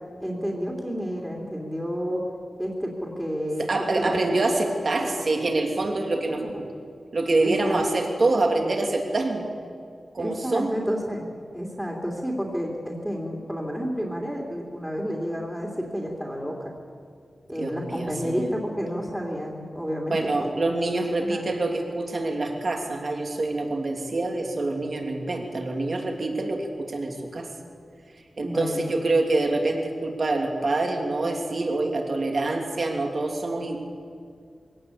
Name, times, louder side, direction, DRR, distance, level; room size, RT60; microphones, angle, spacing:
voice 1, 0.2-2.2 2.6-3.7 4.0-4.2 5.1-5.2 6.4-6.5 7.4-7.8 10.2-11.3 11.5-16.7 17.5-20.5 21.2-21.4 28.4-28.9, equal, 5° right, -1 dB, 3.1 m, -30 dB
voice 2, 3.6-6.7 7.1-9.5 10.1-10.7 17.6-18.5 20.1-27.5 28.4-33.8, right 2 dB, 50° right, 2 dB, 3.0 m, -26 dB
22.5 x 17.5 x 8.6 m, 2.2 s
wide cardioid pair, 115°, 0 cm